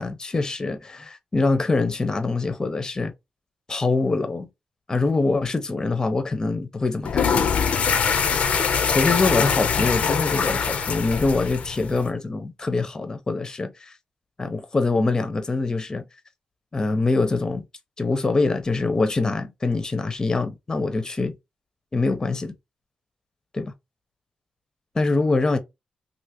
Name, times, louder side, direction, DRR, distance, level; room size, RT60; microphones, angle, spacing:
voice 1, 0.0-3.1 3.7-4.5 4.9-7.3 8.9-13.9 14.4-16.0 16.7-17.6 18.0-21.4 21.9-22.5 23.5-23.7 24.9-25.6, left 3 dB, 25° left, 0.8 m, -24 dB
sound 1, 7.0-12.1, left 6 dB, 65° left, 0.6 m, -23 dB
3.3 x 2.7 x 2.9 m
wide cardioid pair, 115°, 2 cm